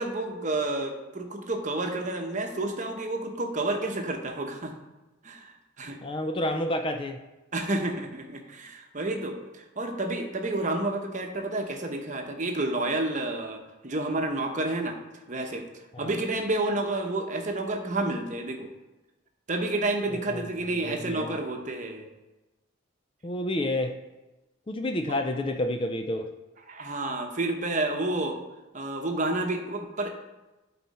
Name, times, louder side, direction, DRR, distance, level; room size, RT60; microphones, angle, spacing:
voice 1, 0.0-4.8 5.2-6.0 7.5-15.0 15.3-15.6 16.0-18.7 19.5-22.1 25.1-25.2 26.7-28.4 28.7-30.2, right 2 dB, 35° right, 3 dB, 0.9 m, -30 dB
voice 2, 6.0-7.2 16.0-16.1 20.3-20.5 20.8-21.4 23.2-24.0 24.7-26.3, left 1 dB, 25° left, 5 dB, 0.4 m, -29 dB
12.0 x 4.3 x 4.2 m, 1.1 s
head